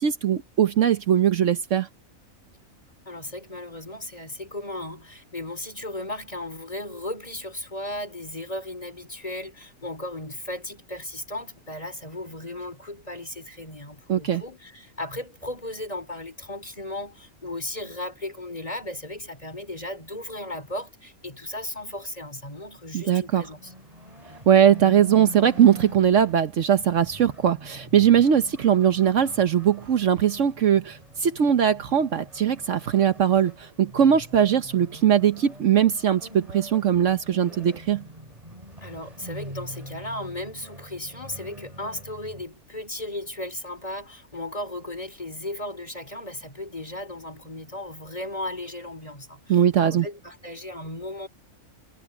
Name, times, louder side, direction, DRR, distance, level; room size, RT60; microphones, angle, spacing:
voice 1, 0.0-1.9 14.1-14.4 22.9-23.5 24.5-38.0 49.5-50.1, right 9 dB, 65° right, 1.2 m, -20 dB
voice 2, 3.0-23.7 38.8-51.3, left 1 dB, 25° left, 4.8 m, -36 dB
sound 1, 23.5-42.4, equal, 25° right, 4.1 m, -44 dB
omnidirectional pair, 1.4 m